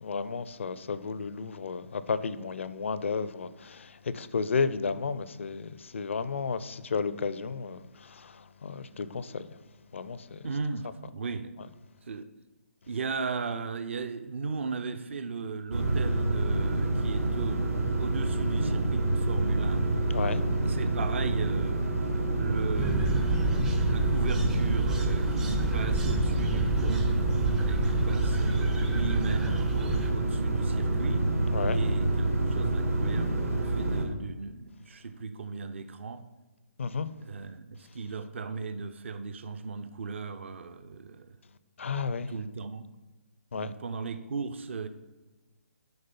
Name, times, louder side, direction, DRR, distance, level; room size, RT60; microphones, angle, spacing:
voice 1, 0.0-9.5 9.9-10.4 20.1-20.4 31.5-31.8 36.8-37.1 41.8-42.3 43.5-43.7, left 5 dB, 60° left, 0.5 m, -33 dB
voice 2, 10.4-11.7 12.1-12.3 12.9-17.7 18.0-19.9 20.6-21.9 22.4-23.6 23.9-27.2 27.6-31.2 31.7-36.2 37.2-41.4 42.3-42.9 43.5-44.9, right 4 dB, 55° right, 0.6 m, -37 dB
sound 1, 15.7-34.0, right 2 dB, 75° right, 1.6 m, -27 dB
sound 2, 22.8-30.1, right 2 dB, 5° right, 0.4 m, -32 dB
7.9 x 5.1 x 5.4 m
figure-of-eight pair, 135°, 8 cm